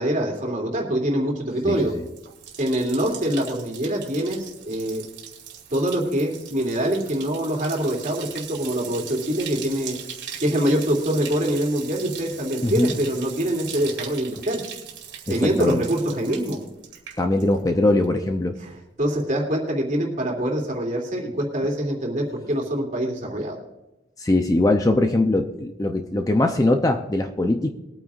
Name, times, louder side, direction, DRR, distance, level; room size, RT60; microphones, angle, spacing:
voice 1, 0.0-1.9 2.6-5.0 5.7-10.0 10.4-14.6 15.3-16.6 18.6-23.6, right 1 dB, 40° right, 0 dB, 2.7 m, -24 dB
voice 2, 1.6-2.0 12.6-12.9 15.3-15.8 17.2-18.6 24.2-27.7, left 2 dB, 20° left, 5 dB, 0.6 m, -21 dB
Bathtub (filling or washing), 1.7-17.8 18.0-18.6, right 8 dB, 65° right, 2.2 m, -39 dB
22.0 x 9.2 x 2.5 m, 1.0 s
head